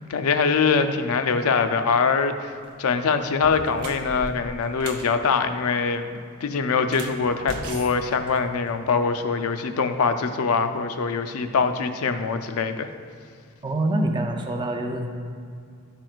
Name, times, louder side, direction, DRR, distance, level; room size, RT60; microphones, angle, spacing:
voice 1, 0.1-2.5 2.8-12.9, left 5 dB, 70° left, 8 dB, 0.4 m, -23 dB
sound 1, 2.5-2.8 3.3-5.1 6.8-8.9, right 2 dB, 80° right, 0.7 m, -38 dB
voice 2, 13.6-15.1, right 1 dB, 20° right, 4 dB, 0.4 m, -25 dB
11.0 x 4.5 x 2.4 m, 2.3 s
head